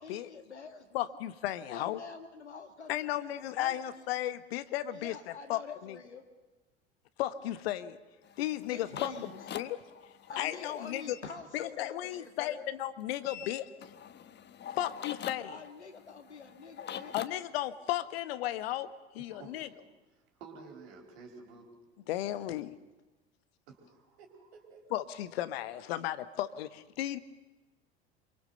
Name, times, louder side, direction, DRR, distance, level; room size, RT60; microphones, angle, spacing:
voice 1, 0.0-1.2 1.7-4.1 4.9-6.2 7.4-7.5 8.6-9.4 10.3-12.7 15.4-17.2, left 5 dB, 85° left, 6 dB, 2.1 m, -46 dB
voice 2, 0.9-2.0 2.9-5.1 5.5-6.0 7.2-8.0 8.4-9.1 9.5-9.8 10.4-11.2 11.5-13.7 14.8-15.6 17.1-18.9 19.1-19.7 22.1-22.7 24.9-27.2, left 13 dB, 65° left, 14 dB, 1.2 m, -34 dB
sound 1, 8.2-11.2 13.2-17.3, left 9 dB, 30° left, 1.2 m, -44 dB
voice 3, 19.3-19.9 20.4-21.7 23.7-24.9, right 4 dB, 65° right, 3 dB, 4.6 m, -51 dB
26.5 x 23.5 x 6.8 m, 1.2 s
figure-of-eight pair, 70°, 33 cm